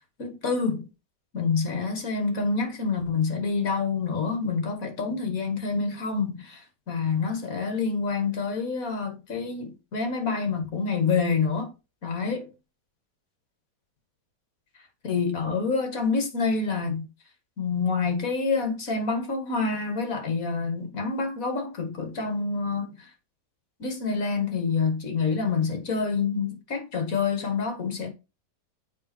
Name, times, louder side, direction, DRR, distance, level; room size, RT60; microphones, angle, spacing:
voice 1, 0.2-0.9 1.3-11.7 12.0-12.5 15.0-17.1 17.6-23.0 23.8-28.1, left 4 dB, 50° left, 2.2 m, -27 dB
7.3 x 5.3 x 4.5 m
omnidirectional pair, 1.9 m